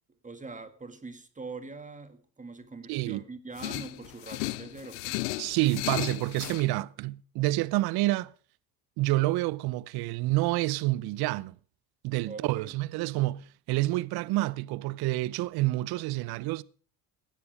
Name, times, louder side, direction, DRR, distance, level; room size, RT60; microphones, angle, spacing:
voice 1, 0.2-5.2 12.2-12.7, right 4 dB, 15° right, 2.1 m, -43 dB
voice 2, 2.9-3.2 5.4-8.3 9.0-11.5 12.0-16.6, right 18 dB, 60° right, 0.7 m, -28 dB
sound 1, 3.6-6.7, left 19 dB, 85° left, 0.8 m, -35 dB
16.5 x 9.5 x 5.0 m
supercardioid pair, 85°, 42 cm